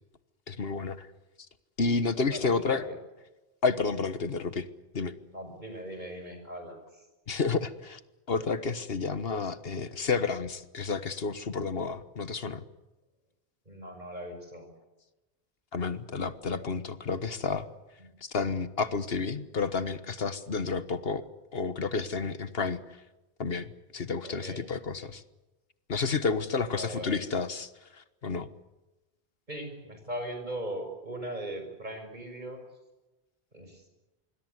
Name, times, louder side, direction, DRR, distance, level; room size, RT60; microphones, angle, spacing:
voice 1, 0.5-1.1 1.8-2.8 3.6-4.6 4.9-5.1 7.3-8.0 8.3-12.6 15.7-17.7 18.2-21.2 21.5-22.8 23.4-25.2 25.9-28.5, left 4 dB, 65° left, 13 dB, 1.5 m, -30 dB
voice 2, 2.3-3.0 5.3-7.1 13.7-14.7 18.0-18.1 24.2-24.6 26.7-27.2 29.5-32.6 33.5-33.8, right 1 dB, 45° right, 6 dB, 6.2 m, -39 dB
26.0 x 21.5 x 8.1 m, 1.1 s
omnidirectional pair, 1.1 m